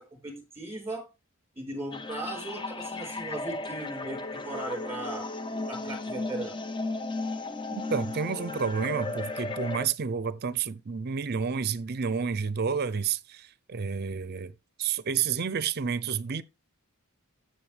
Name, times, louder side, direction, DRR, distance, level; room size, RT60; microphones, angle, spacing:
voice 1, 0.1-1.0 1.6-5.3 5.7-6.6, right 2 dB, 10° right, 4.4 m, -37 dB
sound 1, 1.9-9.9, left 3 dB, 20° left, 0.6 m, -35 dB
voice 2, 7.7-14.5 14.8-16.4, right 6 dB, 45° right, 0.5 m, -30 dB
14.5 x 6.4 x 3.3 m
head